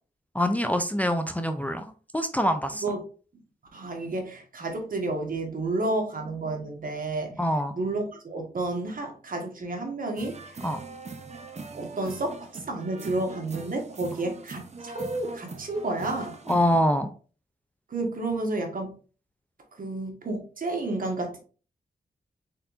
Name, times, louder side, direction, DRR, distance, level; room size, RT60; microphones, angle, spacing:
voice 1, 0.3-2.8 7.4-7.7 10.6-10.8 16.5-17.1, equal, 10° left, 7 dB, 0.4 m, -25 dB
voice 2, 3.7-7.3 7.7-10.6 11.7-16.3 17.9-19.0 19.8-21.4, right 2 dB, 60° right, 3 dB, 1.3 m, -31 dB
sound 1, 10.2-16.8, right 3 dB, 45° right, 0.7 m, -41 dB
4.2 x 4.0 x 2.5 m, 0.38 s
cardioid pair, 65°, 16 cm